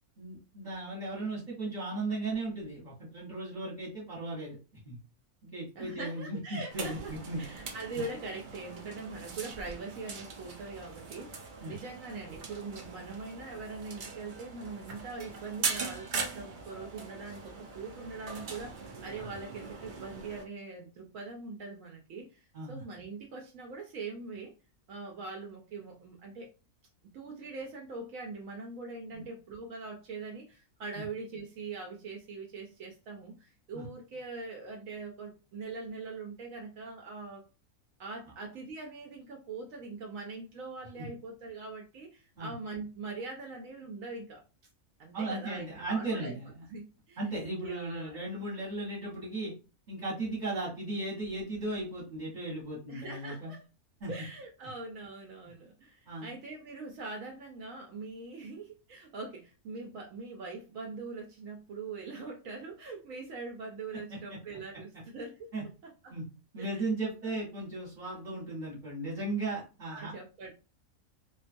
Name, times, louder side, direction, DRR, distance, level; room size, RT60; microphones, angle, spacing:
voice 1, 0.2-4.6 4.8-5.0 5.5-7.4 11.6-11.8 19.2-19.3 22.5-22.8 29.1-29.2 30.9-31.0 33.7-33.8 41.0-41.1 42.4-42.5 45.1-46.6 47.2-49.5 49.9-53.5 54.0-54.1 56.1-56.3 64.1-64.4 65.5-65.6 66.1-66.2 66.5-70.1, right 2 dB, 35° right, -7 dB, 1.1 m, -36 dB
voice 2, 5.8-24.5 24.9-26.5 27.1-37.5 38.0-44.4 45.0-46.4 46.7-47.2 47.6-48.2 52.9-53.6 54.1-65.5 65.8-66.2 66.6-66.9 67.2-67.4 69.9-70.5, right 3 dB, 70° right, 1 dB, 0.9 m, -42 dB
sound 1, 6.7-20.5, right 4 dB, 90° right, 0.4 m, -41 dB
2.5 x 2.3 x 2.5 m, 0.32 s
omnidirectional pair, 1.6 m